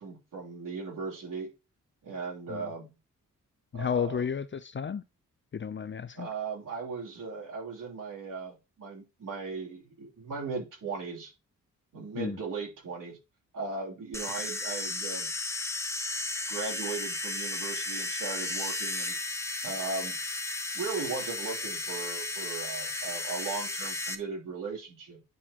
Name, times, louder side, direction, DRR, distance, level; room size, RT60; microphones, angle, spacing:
voice 1, 0.0-1.5 2.0-2.9 3.7-4.2 6.1-11.3 11.9-13.2 13.5-15.3 16.5-19.2 19.6-20.2 20.7-25.2, right 4 dB, 70° right, 3.2 m, -37 dB
voice 2, 3.7-5.0 5.5-6.3 12.2-12.4, left 7 dB, 35° left, 0.5 m, -32 dB
sound 1, 14.1-24.1, left 2 dB, 10° left, 1.0 m, -34 dB
10.0 x 4.0 x 2.9 m
cardioid pair, 70°, 33 cm